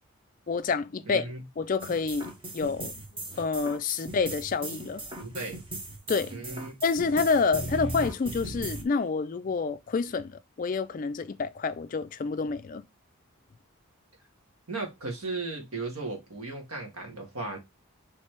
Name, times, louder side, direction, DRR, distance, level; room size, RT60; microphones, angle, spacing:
voice 1, 0.5-1.3 1.6-3.0 3.4-5.0 6.1-6.3 6.8-12.8, left 4 dB, 40° left, 0.3 m, -28 dB
voice 2, 1.0-1.4 5.2-5.6 6.3-6.8 14.7-17.6, right 3 dB, 85° right, 1.5 m, -36 dB
sound 1, 1.8-8.8, right 1 dB, 25° right, 0.9 m, -38 dB
3.2 x 3.2 x 4.4 m
head